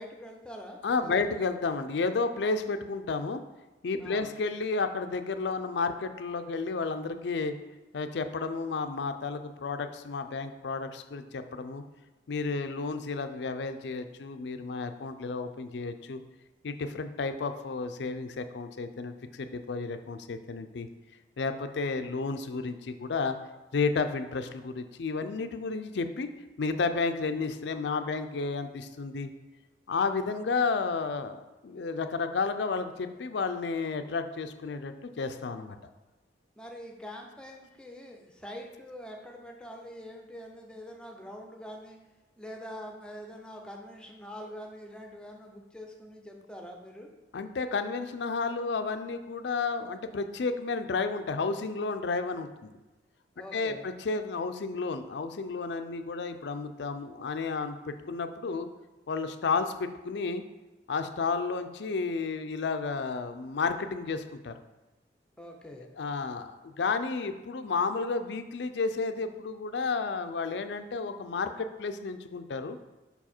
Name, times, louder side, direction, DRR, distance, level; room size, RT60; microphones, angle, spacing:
voice 1, 0.0-1.2 4.0-4.3 36.6-42.0 42.4-47.1 53.4-53.9 65.4-65.9, equal, 5° left, 1 dB, 0.6 m, -44 dB
voice 2, 0.8-3.4 3.8-7.5 7.9-11.8 12.3-16.2 16.6-20.9 21.4-23.4 23.7-26.3 26.6-29.3 29.9-35.8 47.3-52.7 53.5-58.7 59.1-60.4 60.9-64.5 66.0-72.8, left 4 dB, 70° left, 9 dB, 0.4 m, -32 dB
5.4 x 4.7 x 4.3 m, 1.1 s
head